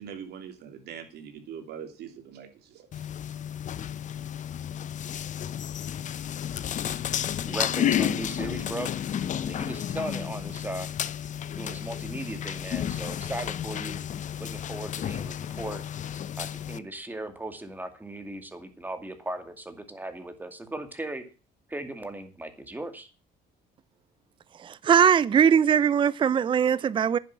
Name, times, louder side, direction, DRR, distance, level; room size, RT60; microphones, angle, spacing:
voice 1, 0.0-3.1, right 8 dB, 75° right, 3.1 m, -42 dB
sound 1, 2.9-16.8, left 9 dB, 45° left, 0.7 m, -32 dB
voice 2, 7.5-8.9 9.4-10.9 11.6-14.0 14.4-15.8 16.4-21.2 21.7-23.1, right 1 dB, 10° right, 2.3 m, -37 dB
voice 3, 24.6-27.2, right 8 dB, 30° right, 0.5 m, -21 dB
10.0 x 7.7 x 7.4 m
cardioid pair, 110°, 17 cm